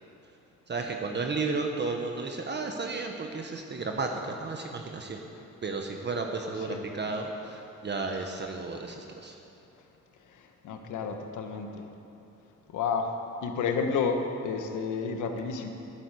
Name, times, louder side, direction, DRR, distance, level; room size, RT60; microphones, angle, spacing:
voice 1, 0.7-5.2 5.6-9.3, right 3 dB, 35° right, 3 dB, 1.2 m, -33 dB
voice 2, 6.6-7.1 10.6-11.8 12.7-13.1 13.4-15.7, left 5 dB, 80° left, 5 dB, 1.4 m, -31 dB
12.5 x 8.3 x 8.4 m, 2.9 s
cardioid pair, 90°, 30 cm